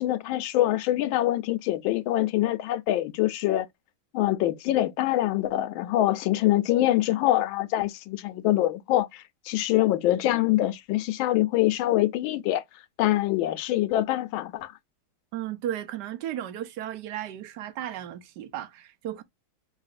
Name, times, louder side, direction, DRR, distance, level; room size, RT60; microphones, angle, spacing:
voice 1, 0.0-3.7 4.1-12.6 13.0-14.7, left 15 dB, 80° left, 1.4 m, -24 dB
voice 2, 15.3-19.2, right 11 dB, 70° right, 1.1 m, -34 dB
4.7 x 2.6 x 2.5 m
omnidirectional pair, 2.1 m